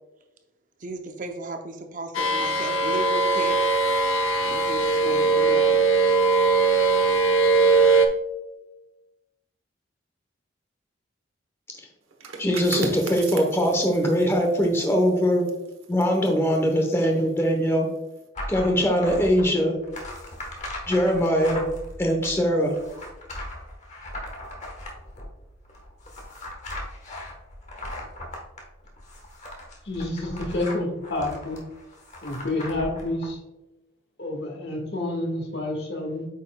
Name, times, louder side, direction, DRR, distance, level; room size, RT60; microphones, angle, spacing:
voice 1, 0.8-3.7 4.5-5.8, right 2 dB, 40° right, 5 dB, 0.6 m, -35 dB
sound 1, 2.1-8.1, right 3 dB, 90° left, 0.8 m, -20 dB
sound 2, 12.1-17.6 18.0-18.2, right 4 dB, 90° right, 1.0 m, -39 dB
voice 2, 12.4-15.4 15.9-17.9 18.5-19.7 20.9-21.6 22.0-22.7, equal, 15° left, 2 dB, 0.8 m, -21 dB
sound 3, 18.4-33.3, left 1 dB, 35° left, 1.1 m, -38 dB
voice 3, 29.8-31.6 32.2-33.4 34.2-36.3, left 2 dB, 55° left, 1 dB, 1.5 m, -29 dB
8.3 x 5.5 x 2.2 m, 1.0 s
head